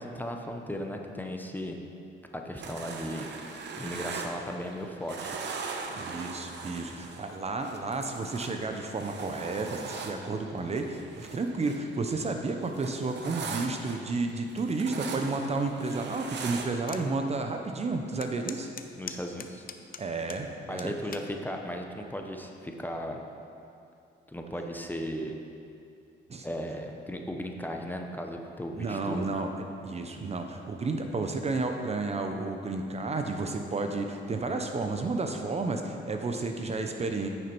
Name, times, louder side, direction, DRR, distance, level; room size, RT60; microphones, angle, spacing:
voice 1, 0.0-1.8 2.3-3.3 3.8-5.4 19.0-19.6 20.7-23.2 24.3-25.4 26.4-29.2, equal, 10° left, 2 dB, 0.8 m, -36 dB
sound 1, 2.6-4.8 5.1-11.9 12.2-17.1, right 4 dB, 60° right, 0.9 m, -40 dB
voice 2, 6.0-18.7 20.0-20.9 26.3-26.5 28.7-29.5 29.8-37.3, right 3 dB, 30° right, 4 dB, 0.7 m, -32 dB
sound 2, 16.9-17.1 17.5-17.6 18.2-20.4 20.8-21.3 22.0-22.3, left 7 dB, 45° left, 0.6 m, -41 dB
9.3 x 6.5 x 4.5 m, 2.6 s
cardioid pair, 90°, 20 cm